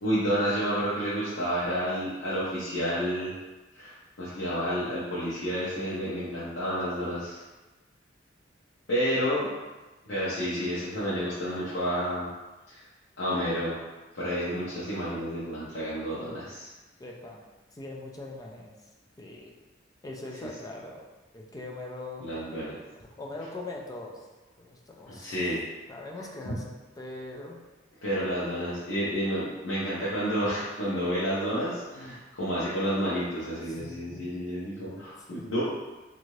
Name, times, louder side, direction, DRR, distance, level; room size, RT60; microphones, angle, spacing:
voice 1, 0.0-3.3 3.7-7.4 8.9-9.5 10.0-12.3 12.7-12.9 13.2-13.8 14.1-16.7 22.2-22.7 25.1-25.6 26.5-26.6 28.0-35.6, equal, 80° left, -10 dB, 0.7 m, -30 dB
voice 2, 17.0-17.4 17.7-18.7 19.2-19.5 20.0-21.1 21.3-22.3 23.0-24.3 24.6-25.5 25.9-27.6 33.7-34.3 34.8-35.5, left 2 dB, 20° left, -1 dB, 0.4 m, -41 dB
2.7 x 2.5 x 3.1 m, 1.2 s
head